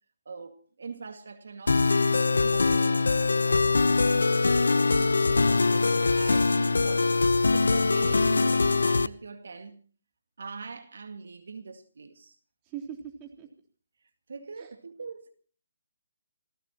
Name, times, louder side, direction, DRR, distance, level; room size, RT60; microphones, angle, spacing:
voice 1, 0.3-1.8 2.4-4.4 4.8-7.2 7.5-9.8 10.4-12.4 14.3-15.3, right 4 dB, 70° right, 2.0 m, -42 dB
sound 1, 1.7-9.1, left 3 dB, 90° left, 0.8 m, -23 dB
voice 2, 12.7-13.5 14.6-14.7, right 8 dB, 20° right, 3.6 m, -40 dB
28.0 x 17.0 x 3.0 m
hypercardioid pair, 160°, 0 cm